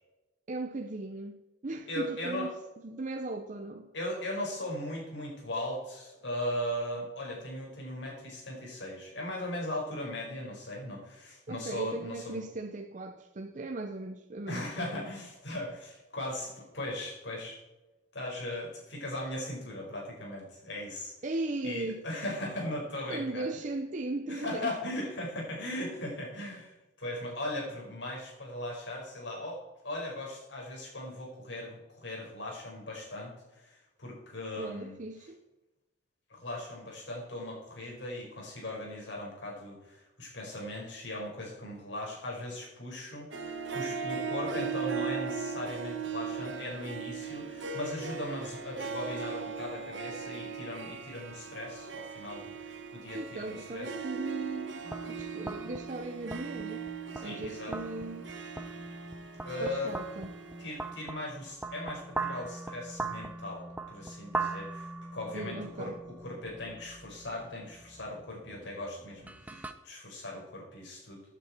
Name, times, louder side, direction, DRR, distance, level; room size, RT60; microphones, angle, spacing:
voice 1, 0.5-2.5 2.8-3.9 11.5-15.1 21.2-22.0 23.1-24.7 34.6-35.4 53.1-56.9 57.2-58.3 59.6-60.3 65.3-66.0 69.5-69.6, right 2 dB, 45° right, 0.7 m, -38 dB
voice 2, 1.9-2.5 3.9-12.4 14.5-17.6 18.1-21.1 21.6-23.5 24.3-35.0 36.3-53.9 57.1-57.8 59.4-60.0 60.6-71.2, left 1 dB, 75° left, 5.2 m, -38 dB
Harp, 43.3-60.9, right 5 dB, 90° right, 1.4 m, -39 dB
sound 1, 54.8-69.7, right 3 dB, 10° right, 0.7 m, -41 dB
15.5 x 9.2 x 4.4 m
head